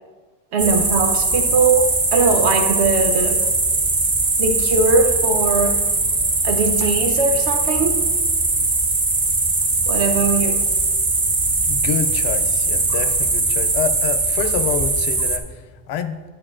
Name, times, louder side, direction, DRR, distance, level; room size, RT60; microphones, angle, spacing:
voice 1, 0.5-3.4 4.4-5.8 6.4-8.1 9.9-10.6, right 4 dB, 85° right, 5 dB, 1.0 m, -20 dB
sound 1, 0.6-15.4, right 3 dB, 30° right, 0.4 m, -20 dB
voice 2, 11.7-16.3, left 7 dB, 75° left, 9 dB, 0.9 m, -27 dB
10.0 x 8.8 x 2.4 m, 1.3 s
omnidirectional pair, 1.1 m